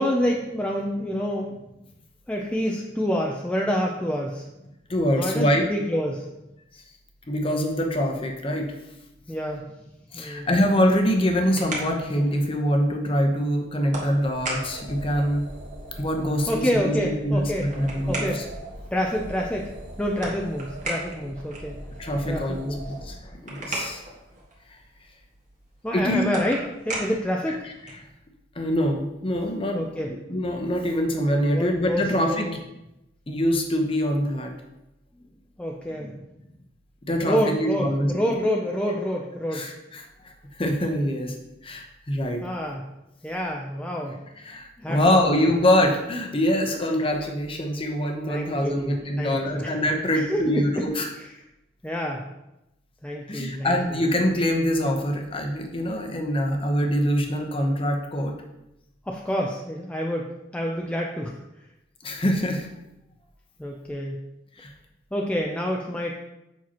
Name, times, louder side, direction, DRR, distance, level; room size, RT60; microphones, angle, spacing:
voice 1, 0.0-1.6 2.3-4.4 5.1-6.3 9.3-9.6 10.1-10.5 16.5-17.7 18.1-18.5 18.9-21.8 22.2-22.9 25.8-27.7 29.7-30.1 31.5-32.6 35.6-36.2 37.2-39.7 42.4-42.8 43.2-44.2 44.8-45.5 48.3-49.7 50.1-50.8 51.2-51.3 51.8-52.2 53.0-53.8 59.1-61.4 63.6-64.2 65.1-66.2, equal, 5° left, -1 dB, 0.4 m, -28 dB
voice 2, 4.9-5.6 7.3-8.7 10.1-15.5 16.0-18.4 22.0-24.0 25.9-26.2 27.6-27.7 28.5-29.8 30.1-32.5 33.3-34.5 37.0-38.3 39.5-41.4 41.6-42.4 44.0-44.1 44.4-51.1 53.3-58.4 62.0-62.7 64.6-64.7, equal, 30° left, 3 dB, 0.8 m, -24 dB
sound 1, 11.4-28.1, right 2 dB, 45° right, 1.6 m, -39 dB
sound 2, 14.1-23.3, right 1 dB, 75° right, 1.3 m, -41 dB
7.4 x 5.8 x 2.9 m, 0.91 s
head